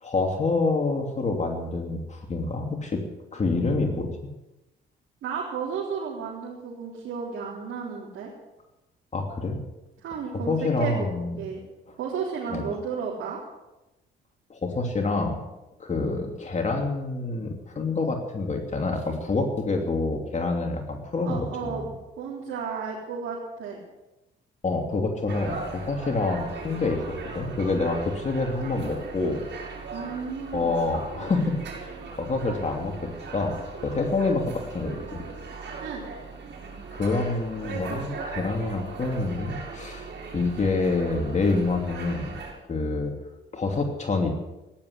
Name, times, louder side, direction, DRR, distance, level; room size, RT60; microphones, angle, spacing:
voice 1, 0.0-3.0 3.3-4.1 9.1-9.6 10.5-11.4 11.9-12.0 12.5-12.6 14.5-15.4 15.8-21.9 24.6-29.4 30.5-33.5 33.8-35.2 36.9-40.1 40.3-42.3 42.7-43.1 43.5-44.4, left 3 dB, 35° left, 3 dB, 2.8 m, -27 dB
voice 2, 5.2-8.3 10.0-11.1 11.4-11.6 12.0-13.4 21.2-21.9 22.2-23.8 29.9-30.8 35.8-36.0, right 6 dB, 80° right, -4 dB, 3.8 m, -33 dB
sound 1, 25.3-42.5, right 4 dB, 60° right, 6.0 m, -38 dB
16.0 x 11.0 x 8.2 m, 1.0 s
cardioid pair, 90°, 20 cm